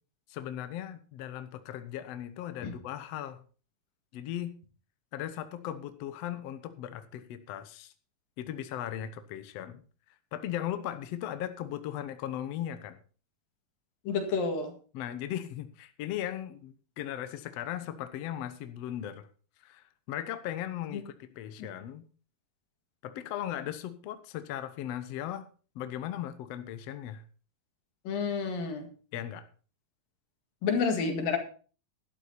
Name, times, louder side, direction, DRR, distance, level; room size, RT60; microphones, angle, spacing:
voice 1, 0.3-3.4 4.1-4.6 5.1-7.9 8.4-9.8 10.3-13.0 14.9-19.3 19.6-22.0 23.0-25.4 25.7-27.2 29.1-29.5, left 11 dB, 65° left, 10 dB, 1.7 m, -37 dB
voice 2, 14.1-14.7 20.9-21.0 28.1-28.9 30.6-31.4, left 5 dB, 90° left, 5 dB, 3.8 m, -29 dB
12.0 x 11.5 x 4.2 m, 0.38 s
omnidirectional pair, 3.9 m